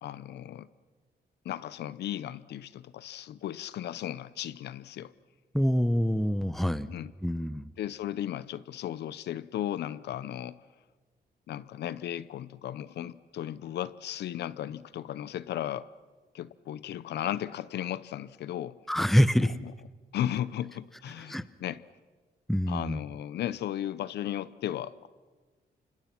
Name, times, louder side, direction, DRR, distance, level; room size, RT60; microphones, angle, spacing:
voice 1, 0.0-0.7 1.4-5.1 6.8-7.1 7.8-10.6 11.5-15.9 16.3-18.8 19.5-19.7 20.1-21.8 22.7-25.1, left 11 dB, 85° left, 17 dB, 0.7 m, -35 dB
voice 2, 5.5-6.9 7.2-7.7 18.9-19.5 21.3-21.4 22.5-23.0, equal, ahead, 14 dB, 0.9 m, -25 dB
29.0 x 25.5 x 6.0 m, 1.4 s
cardioid pair, 110°, 17 cm